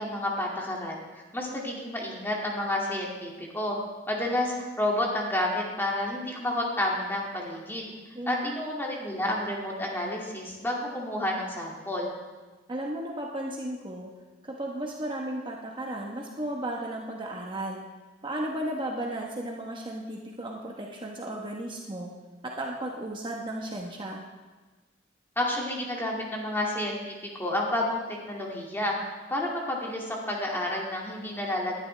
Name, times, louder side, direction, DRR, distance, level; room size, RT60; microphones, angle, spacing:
voice 1, 0.0-3.8 4.1-7.9 8.3-12.1 25.4-28.0 28.3-28.9 29.3-31.8, left 1 dB, 10° left, -2 dB, 2.2 m, -30 dB
voice 2, 8.1-8.5 12.7-14.1 14.4-17.8 18.2-22.1 22.4-24.2, right 1 dB, 25° right, -1 dB, 1.1 m, -34 dB
19.5 x 11.5 x 3.3 m, 1.3 s
head